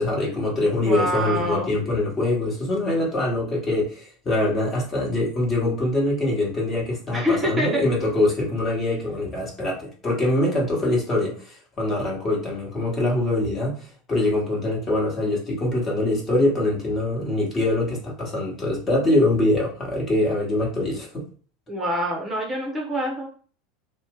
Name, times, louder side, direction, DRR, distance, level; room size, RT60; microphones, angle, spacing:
voice 1, 0.0-13.8 14.1-21.2, left 1 dB, 25° left, -3 dB, 1.3 m, -23 dB
voice 2, 0.8-1.7 7.1-7.9 21.7-23.3, equal, 20° right, -1 dB, 0.7 m, -25 dB
2.5 x 2.1 x 3.7 m, 0.42 s
figure-of-eight pair, 80°, 0 cm